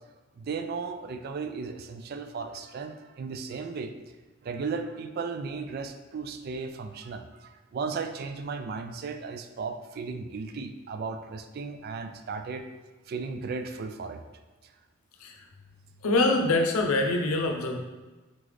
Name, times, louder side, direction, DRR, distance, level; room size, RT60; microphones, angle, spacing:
voice 1, 0.4-3.9 4.4-12.7 13.1-14.2 14.6-14.7, right 4 dB, 45° right, 7 dB, 0.3 m, -35 dB
voice 2, 16.0-17.8, left 2 dB, 90° left, 3 dB, 0.6 m, -24 dB
3.9 x 3.7 x 3.2 m, 1.2 s
head